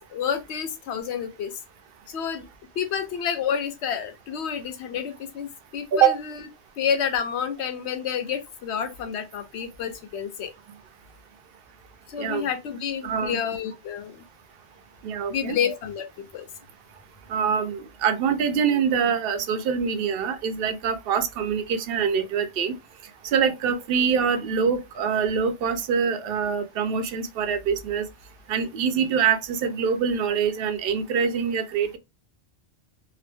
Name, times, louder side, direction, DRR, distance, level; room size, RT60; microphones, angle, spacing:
voice 1, 0.1-1.6 2.1-2.5 2.8-6.4 6.8-10.5 12.1-14.2 15.3-16.5, left 7 dB, 80° left, 0.9 m, -29 dB
voice 2, 12.2-12.5 13.0-13.4 15.0-15.6 17.3-22.8 23.2-28.0 28.5-32.0, right 7 dB, 65° right, 0.7 m, -24 dB
2.8 x 2.0 x 3.3 m
omnidirectional pair, 1.1 m